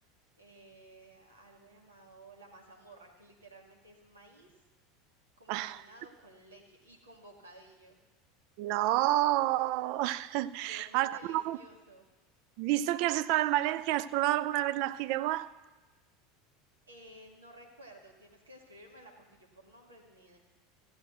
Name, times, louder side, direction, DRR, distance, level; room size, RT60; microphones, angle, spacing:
voice 1, 0.4-4.6 5.4-8.0 10.6-12.0 16.9-20.4, right 1 dB, 75° right, 2.1 m, -55 dB
voice 2, 5.5-5.8 8.6-11.6 12.6-15.5, right 15 dB, 50° right, 0.4 m, -29 dB
15.0 x 7.9 x 6.1 m
figure-of-eight pair, 75°, 0 cm